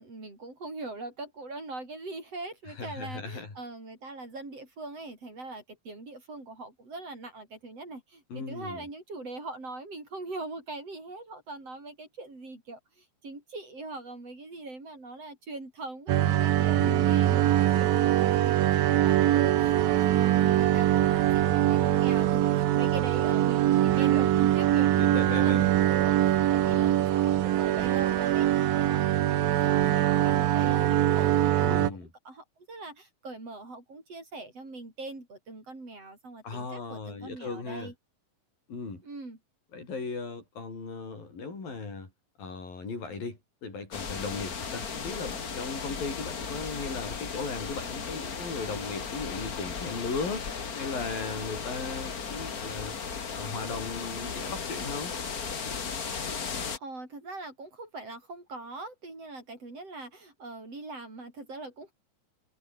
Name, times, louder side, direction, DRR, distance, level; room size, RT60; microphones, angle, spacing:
voice 1, 0.0-31.8 32.2-37.9 39.0-39.4 56.4-61.9, right 2 dB, 40° right, 8.2 m, -42 dB
voice 2, 2.8-3.5 8.3-8.9 16.8-17.4 25.0-25.7 26.7-27.0 31.6-32.1 36.4-37.9 38.7-39.0 39.7-42.1 42.4-53.0 53.3-55.1, left 4 dB, 75° left, 8.9 m, -37 dB
sound 1, 16.1-31.9, right 13 dB, 85° right, 3.2 m, -23 dB
sound 2, 43.9-56.8, left 6 dB, 35° left, 1.6 m, -36 dB
omnidirectional pair, 4.1 m